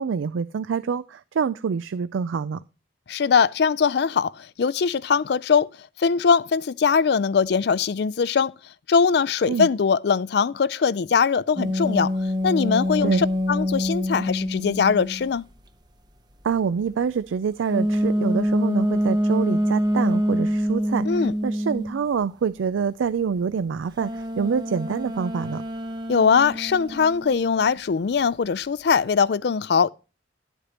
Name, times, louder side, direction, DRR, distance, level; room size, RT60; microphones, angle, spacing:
voice 1, 0.0-2.6 9.5-9.7 13.0-13.2 16.4-25.6, right 6 dB, 85° right, 0.4 m, -26 dB
voice 2, 3.1-5.7 6.0-8.5 8.9-12.1 12.4-15.5 21.1-21.3 26.1-29.9, left 6 dB, 60° left, 0.4 m, -21 dB
sound 1, 11.6-15.4 17.7-22.0 24.0-27.8, equal, 20° right, 0.8 m, -25 dB
12.0 x 8.1 x 2.9 m
head